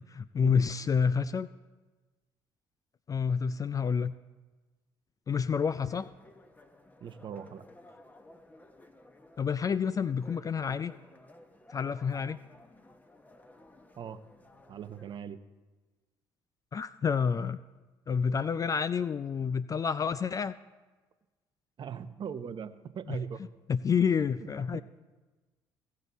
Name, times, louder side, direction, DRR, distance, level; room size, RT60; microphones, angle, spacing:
voice 1, 0.0-1.5 3.1-4.1 5.3-6.1 9.4-10.9 11.7-12.4 16.7-17.6 18.1-20.6 23.1-23.2 23.7-24.8, left 6 dB, 30° left, 14 dB, 0.3 m, -29 dB
sound 1, 5.6-15.2, left 1 dB, 15° left, 1.1 m, -55 dB
voice 2, 7.0-7.6 14.0-14.2 14.7-15.4 21.8-23.4 24.4-24.8, right 7 dB, 45° right, 12 dB, 0.7 m, -40 dB
16.5 x 6.5 x 4.1 m, 1.3 s
hypercardioid pair, 50°, 11 cm